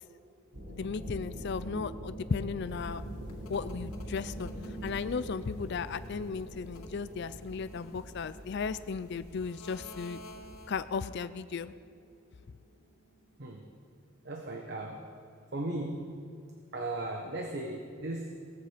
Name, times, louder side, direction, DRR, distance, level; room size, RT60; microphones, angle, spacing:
sound 1, 0.5-13.2, equal, 75° right, 3.0 m, -44 dB
voice 1, 0.7-3.0 3.5-10.2 10.7-11.7, left 5 dB, 50° left, 13 dB, 0.4 m, -35 dB
sound 2, 2.6-11.0, equal, 85° left, 2.2 m, -49 dB
voice 2, 14.2-15.1 15.5-16.2 16.7-18.5, right 2 dB, 50° right, 3 dB, 1.2 m, -37 dB
18.0 x 14.5 x 5.1 m, 2.4 s
head